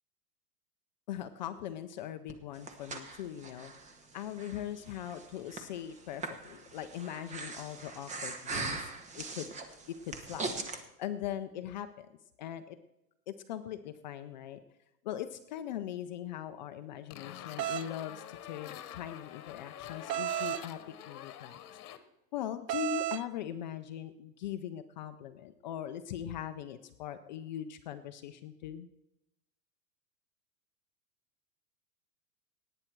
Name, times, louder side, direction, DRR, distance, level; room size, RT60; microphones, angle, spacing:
voice 1, 1.1-3.7 4.1-8.9 9.1-9.5 10.0-12.1 12.4-12.8 13.3-14.6 15.0-20.8 21.1-21.6 22.3-28.9, left 10 dB, 30° left, 9 dB, 0.4 m, -40 dB
Breathing, 2.3-10.8, right 3 dB, 15° right, 0.9 m, -41 dB
sound 1, 17.1-22.0, left 11 dB, 65° left, 1.4 m, -46 dB
sound 2, 17.6-17.9 20.1-20.7 22.7-23.2, right 15 dB, 80° right, 0.7 m, -33 dB
18.0 x 9.0 x 4.5 m, 0.88 s
supercardioid pair, 150°, 48 cm